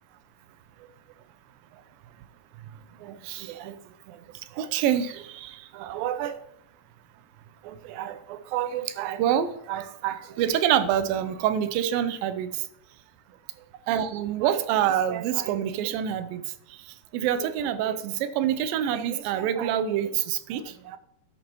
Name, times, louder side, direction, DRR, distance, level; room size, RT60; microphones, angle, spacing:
voice 1, 3.0-3.8 4.1-4.2 4.5-6.4 7.6-12.6 13.9-16.4 16.7-16.8 17.1-21.0, right 10 dB, 85° right, 11 dB, 2.4 m, -27 dB
11.0 x 8.7 x 3.0 m, 0.81 s
omnidirectional pair, 4.1 m